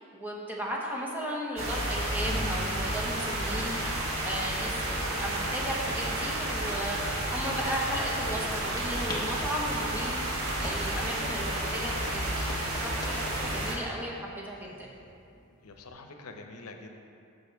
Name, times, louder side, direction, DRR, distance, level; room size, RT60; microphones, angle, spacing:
voice 1, 0.0-14.9, equal, 10° right, -4 dB, 1.2 m, -35 dB
sound 1, 1.6-13.7, right 1 dB, 65° right, 1.6 m, -31 dB
sound 2, 2.3-8.5, right 2 dB, 35° right, 0.5 m, -47 dB
sound 3, 8.3-15.9, left 1 dB, 20° left, 1.0 m, -46 dB
voice 2, 15.6-17.0, left 3 dB, 85° left, 4 dB, 0.7 m, -46 dB
14.5 x 5.5 x 3.5 m, 2.5 s
head